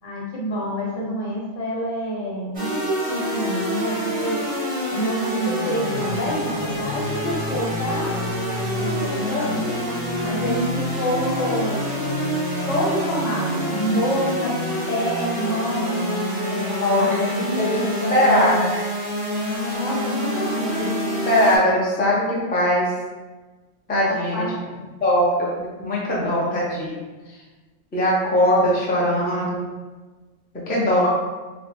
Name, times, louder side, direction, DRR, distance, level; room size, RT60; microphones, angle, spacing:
voice 1, 0.0-4.4 4.9-8.2 8.8-9.7 10.2-12.0 12.7-14.6 14.9-16.1 16.5-18.5 19.7-20.9 24.1-24.5, equal, 80° left, -4 dB, 1.2 m, -27 dB
sound 1, 2.5-21.6, equal, 45° right, 0.6 m, -26 dB
voice 2, 16.8-17.3 17.6-17.8 18.1-18.8 21.3-22.9 23.9-24.5 25.0-25.5 25.8-27.0 27.3-27.4 27.9-29.6 30.7-31.1, left 1 dB, 15° left, -6 dB, 0.4 m, -20 dB
2.9 x 2.1 x 3.3 m, 1.3 s
omnidirectional pair, 1.3 m